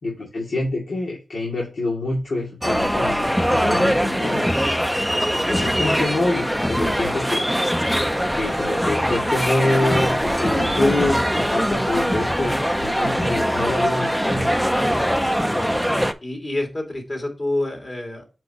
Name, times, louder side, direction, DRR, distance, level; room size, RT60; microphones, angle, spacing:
voice 1, 0.0-4.5 5.3-7.5 8.3-14.5, left 2 dB, 85° left, -4 dB, 2.4 m, -26 dB
sound 1, 2.6-16.1, equal, ahead, 0.5 m, -22 dB
voice 2, 15.5-15.9 16.2-18.2, left 1 dB, 40° left, 2 dB, 2.4 m, -28 dB
7.7 x 4.8 x 2.9 m, 0.31 s
wide cardioid pair, 105°, 0 cm